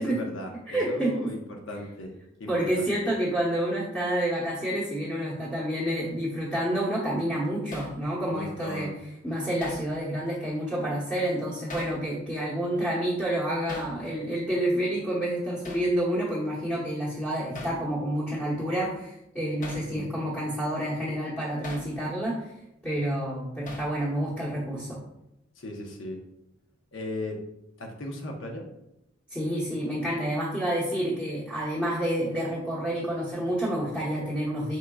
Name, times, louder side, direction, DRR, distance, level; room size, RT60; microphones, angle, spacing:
voice 1, 0.0-2.1 2.4-2.9 8.3-8.9 19.9-20.1 25.6-26.2 26.9-27.4 27.8-28.7, left 1 dB, 75° left, 1 dB, 0.8 m, -37 dB
voice 2, 0.7-1.3 2.5-8.9 9.2-22.5 22.8-25.0 29.3-34.8, right 1 dB, 5° left, -9 dB, 1.0 m, -29 dB
Hammer, 7.7-8.0 9.6-9.9 11.7-12.0 13.7-14.0 15.6-15.9 17.6-17.8 19.6-19.9 21.6-21.9 23.7-24.0, left 2 dB, 40° left, 0.7 m, -40 dB
4.6 x 3.7 x 2.3 m, 0.84 s
head